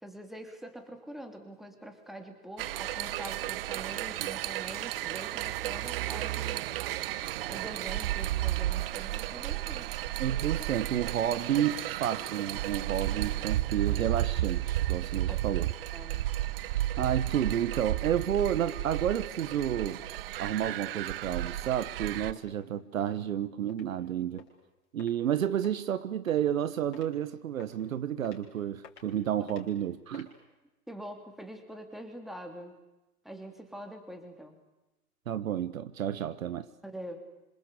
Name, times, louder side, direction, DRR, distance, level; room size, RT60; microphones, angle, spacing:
voice 1, 0.0-6.7 7.5-9.9 15.3-15.4 15.9-16.2 29.4-29.5 30.9-32.8 33.2-34.6 36.8-37.2, right 1 dB, ahead, 3.1 m, -44 dB
sound 1, 2.6-22.3, right 14 dB, 35° right, 0.9 m, -33 dB
voice 2, 10.2-15.7 17.0-20.0 20.3-24.5 24.9-30.3 35.3-36.7, right 10 dB, 60° right, 1.4 m, -31 dB
sound 2, 22.4-22.5 23.0-23.1 23.7-23.8 24.4-24.5 25.0-25.1 25.6-25.8 26.3-26.6 26.9-27.1 27.6-27.8 28.2-28.4 28.8-29.1 29.5-29.6 30.1-30.3, left 8 dB, 25° left, 6.1 m, -51 dB
26.5 x 26.5 x 8.5 m
hypercardioid pair, 125°, 47 cm